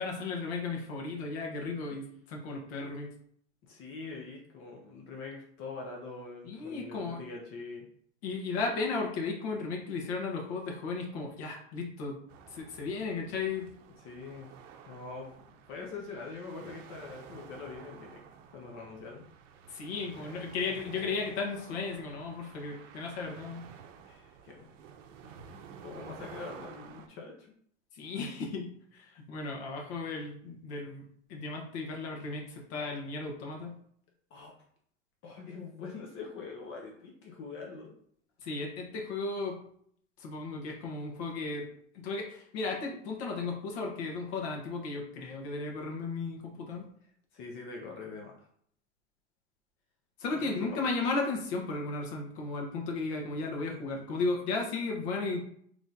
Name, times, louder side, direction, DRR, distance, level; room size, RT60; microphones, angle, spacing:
voice 1, 0.0-3.1 6.4-7.2 8.2-12.2 12.5-13.7 19.7-23.7 27.9-31.0 31.3-33.8 38.4-39.6 40.2-41.7 41.9-46.8 50.2-55.4, left 3 dB, 60° left, 1 dB, 1.2 m, -35 dB
voice 2, 3.6-7.9 14.0-14.5 14.8-18.2 18.5-19.2 20.1-20.4 24.0-24.7 25.2-27.5 34.3-34.5 35.2-37.9 47.3-48.5 50.3-50.8, left 4 dB, 35° left, 0 dB, 0.6 m, -44 dB
sound 1, 12.3-27.1, right 7 dB, 75° right, 0.6 m, -52 dB
3.7 x 3.2 x 2.7 m, 0.65 s
supercardioid pair, 140°, 38 cm